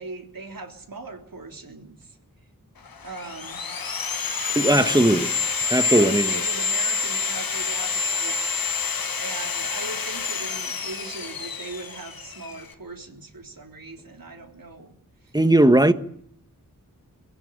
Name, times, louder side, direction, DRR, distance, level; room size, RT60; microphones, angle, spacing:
voice 1, 0.0-2.2 3.0-3.6 4.6-5.2 5.9-8.6 9.2-14.9 15.2-15.3, right 3 dB, 75° right, 3.6 m, -39 dB
Sawing, 2.9-12.7, left 5 dB, 85° left, 1.5 m, -28 dB
voice 2, 4.5-5.3 5.7-6.3 15.3-15.9, right 1 dB, 10° right, 1.3 m, -18 dB
22.5 x 16.5 x 9.0 m
wide cardioid pair, 65°, 34 cm